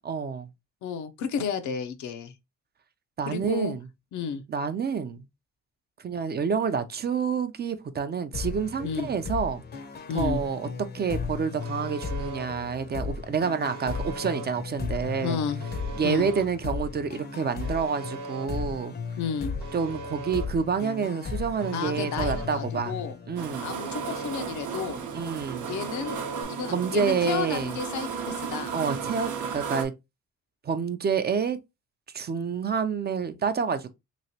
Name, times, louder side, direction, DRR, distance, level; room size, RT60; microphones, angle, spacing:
voice 1, 0.0-0.5 3.2-3.8 4.5-5.2 6.0-9.6 10.1-10.7 10.9-15.4 15.9-18.9 19.7-22.9 23.3-23.7 25.1-25.7 26.7-27.8 28.7-29.9 30.6-31.6 32.1-33.9, right 6 dB, 35° right, 0.4 m, -28 dB
voice 2, 0.8-2.3 3.3-3.7 4.1-4.4 8.8-9.1 10.1-10.4 15.2-15.6 16.0-16.3 19.2-19.6 21.7-23.2 23.6-25.0 25.7-28.7, left 6 dB, 70° left, 0.6 m, -32 dB
sound 1, 8.3-23.8, left 4 dB, 35° left, 0.6 m, -35 dB
Alarm, 11.6-12.5 13.6-14.5 15.6-16.5 17.6-18.5 19.6-20.5 21.6-22.5 23.6-24.5 25.6-26.4, right 3 dB, 60° right, 1.0 m, -39 dB
sound 2, 23.4-29.8, right 6 dB, 85° right, 0.8 m, -34 dB
3.0 x 2.9 x 2.7 m
cardioid pair, 90°, 30 cm